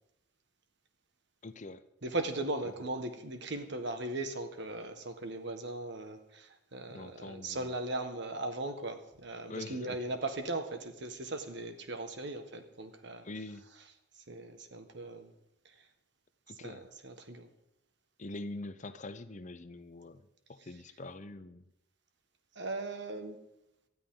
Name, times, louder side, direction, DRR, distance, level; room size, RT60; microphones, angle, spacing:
voice 1, 1.4-1.8 6.9-7.7 9.5-10.0 13.2-13.7 16.5-16.8 18.2-21.7, left 2 dB, 40° left, 12 dB, 0.7 m, -44 dB
voice 2, 2.0-13.3 14.2-15.3 15.6-15.9 16.6-17.5 22.5-23.4, right 2 dB, 65° right, 7 dB, 1.6 m, -38 dB
19.0 x 13.0 x 3.9 m, 0.90 s
head